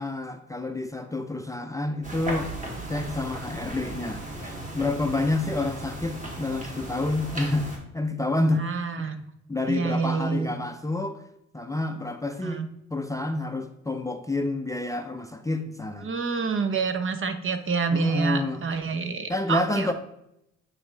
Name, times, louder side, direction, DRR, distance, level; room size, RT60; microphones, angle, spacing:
voice 1, 0.0-2.5 2.9-7.7 7.9-8.6 9.0-9.1 9.5-11.2 11.5-12.6 12.9-16.1 17.9-18.6 19.3-19.9, left 2 dB, 10° left, 6 dB, 0.5 m, -28 dB
sound 1, 2.0-7.8, right 1 dB, 25° right, 1.8 m, -36 dB
voice 2, 8.6-9.2 9.7-10.5 12.4-12.7 16.0-19.9, right 5 dB, 45° right, 9 dB, 0.8 m, -27 dB
9.2 x 4.2 x 3.3 m, 0.82 s
cardioid pair, 90°, 30 cm